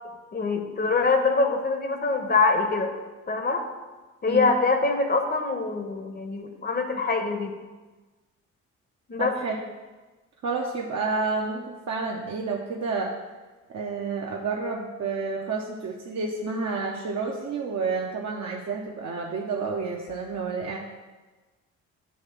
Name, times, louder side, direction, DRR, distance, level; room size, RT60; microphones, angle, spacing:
voice 1, 0.3-2.9 3.3-3.6 4.2-7.6 9.1-9.3, left 3 dB, 25° left, 5 dB, 0.9 m, -24 dB
voice 2, 9.2-9.6 10.4-13.1 13.7-20.8, right 4 dB, 45° right, -1 dB, 0.8 m, -30 dB
8.6 x 3.2 x 5.8 m, 1.3 s
hypercardioid pair, 45°, 39 cm